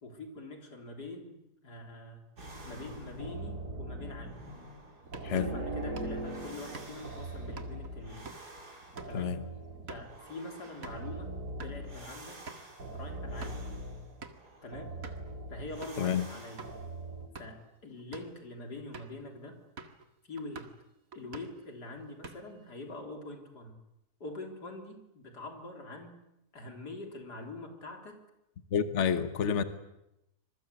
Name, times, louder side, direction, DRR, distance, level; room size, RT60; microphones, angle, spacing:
voice 1, 0.0-1.4 1.6-2.2 2.6-4.4 5.3-8.2 9.1-9.3 9.9-11.3 11.6-12.4 12.9-13.6 14.6-14.9 15.5-16.7 17.4-19.6 20.2-20.7 21.1-23.8 24.2-26.1 26.5-28.2, left 2 dB, 85° left, 3 dB, 4.3 m, -44 dB
sound 1, 2.4-17.3, right 1 dB, 80° right, 4.3 m, -42 dB
sound 2, 5.0-11.1 11.4-11.8 12.1-12.2 12.5-12.7 13.2-13.7 14.2-14.5 15.0-15.3 15.8-16.1 16.6-16.7 17.2-17.6 18.0-18.4 18.9-19.2 19.8-20.1 20.4-20.8 21.1-21.6 22.0-22.6, right 4 dB, 60° right, 2.3 m, -48 dB
voice 2, 5.2-5.6 9.1-9.4 16.0-16.2 28.7-29.6, left 7 dB, 50° left, 10 dB, 1.4 m, -29 dB
26.0 x 22.0 x 8.3 m, 0.87 s
omnidirectional pair, 1.7 m